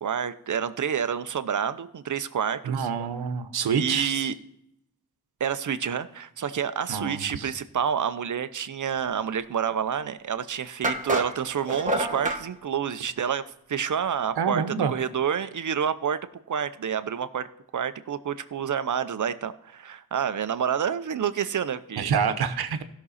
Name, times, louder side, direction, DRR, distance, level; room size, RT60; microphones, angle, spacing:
voice 1, 0.0-2.9 3.8-4.3 5.4-13.4 13.7-16.2 16.5-17.5 17.7-22.1, right 8 dB, 55° right, 12 dB, 0.7 m, -28 dB
voice 2, 2.7-4.3 6.9-7.5 14.4-14.9 22.0-22.8, right 6 dB, 85° right, 10 dB, 1.0 m, -27 dB
sound 1, 10.0-10.1 10.8-12.4, right 1 dB, 20° right, 1.2 m, -28 dB
16.0 x 6.1 x 4.1 m, 0.78 s
wide cardioid pair, 110°, 37 cm